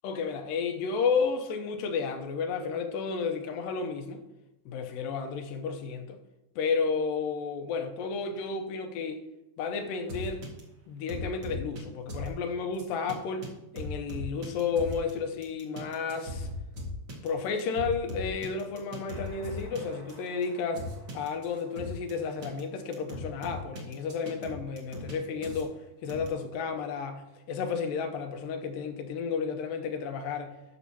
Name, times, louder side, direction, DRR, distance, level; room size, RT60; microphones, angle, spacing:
voice 1, 0.0-4.2 4.7-6.2 6.6-9.2 9.6-10.4 10.9-13.5 13.7-16.5 17.2-25.8 26.0-30.6, left 5 dB, 90° left, 6 dB, 2.4 m, -32 dB
sound 1, 10.1-10.6 11.1-11.8 12.1-12.3 12.8-13.1 13.4-13.5 13.8-15.1 15.4-22.1 22.4-22.6 22.9-25.1 25.4-25.6 26.1-26.3, left 1 dB, 40° right, 2.0 m, -38 dB
12.5 x 6.1 x 2.8 m, 0.99 s
omnidirectional pair, 4.0 m